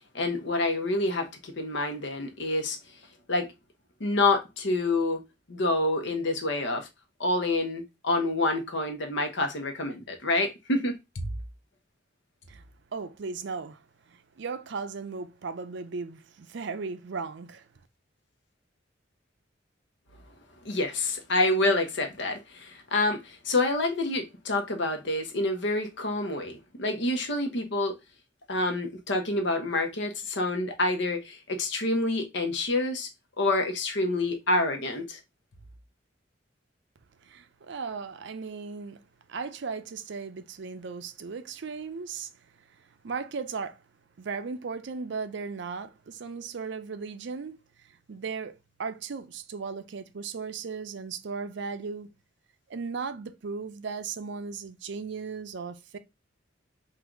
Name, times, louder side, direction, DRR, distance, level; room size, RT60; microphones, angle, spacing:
voice 1, 0.1-2.8 3.3-3.5 4.0-5.2 5.5-6.9 7.2-11.2 20.6-27.9 28.5-33.1 33.4-35.2, left 2 dB, 70° left, 0.9 m, -27 dB
voice 2, 12.9-13.8 14.1-17.7 37.2-39.0 39.3-42.3 43.0-43.8 44.2-47.6 48.1-52.1 52.7-56.0, right 5 dB, 65° right, 0.5 m, -36 dB
3.8 x 2.6 x 4.5 m
head